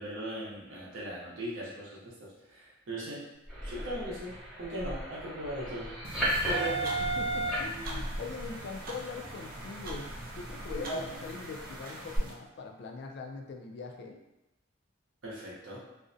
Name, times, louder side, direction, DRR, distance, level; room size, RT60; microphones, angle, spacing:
voice 1, 0.0-3.2 3.6-6.0 6.5-6.8 10.7-11.2 15.2-15.8, right 1 dB, 80° right, -7 dB, 0.7 m, -38 dB
sound 1, 3.5-12.2, right 1 dB, 5° right, 0.7 m, -36 dB
sound 2, 6.0-12.3, right 2 dB, 45° right, 0.4 m, -44 dB
voice 2, 6.5-6.9 7.2-14.2, left 4 dB, 60° left, 3 dB, 0.3 m, -42 dB
2.4 x 2.1 x 2.5 m, 0.98 s
head